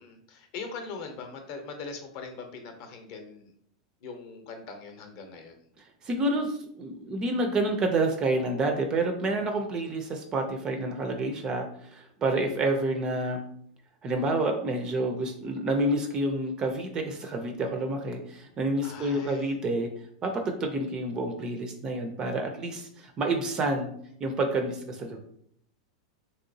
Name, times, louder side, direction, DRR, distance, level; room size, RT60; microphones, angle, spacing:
voice 1, 0.0-3.5 4.0-5.7 18.8-19.5, left 4 dB, 45° left, 5 dB, 0.6 m, -41 dB
voice 2, 5.8-13.4 14.0-19.9 20.2-23.9 24.2-25.2, right 2 dB, 20° right, 5 dB, 0.3 m, -29 dB
3.1 x 2.8 x 2.6 m, 0.67 s
supercardioid pair, 160°, 4 cm